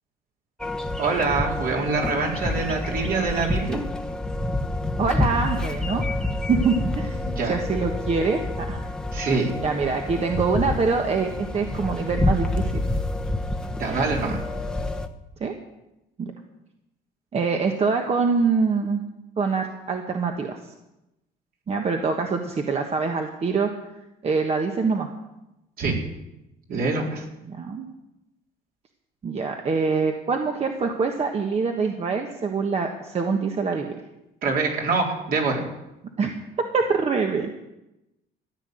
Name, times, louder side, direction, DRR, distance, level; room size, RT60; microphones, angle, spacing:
sound 1, 0.6-15.1, left 2 dB, 5° left, 1.1 m, -28 dB
voice 1, 1.0-3.8 7.2-7.6 9.1-9.5 13.7-14.4 25.8-25.9 26.7-27.3 34.4-35.6, right 4 dB, 60° right, 0 dB, 4.0 m, -25 dB
voice 2, 5.0-6.0 6.5-7.2 7.5-8.4 8.7-8.8 9.6-12.8 15.4-15.5 16.2-16.3 17.3-19.0 19.4-20.6 21.7-23.7 24.2-25.1 27.5-27.8 29.2-34.0 36.2-36.4 36.7-37.5, right 4 dB, 40° right, 3 dB, 1.4 m, -24 dB
14.5 x 9.9 x 7.8 m, 0.93 s
cardioid pair, 110°, 17 cm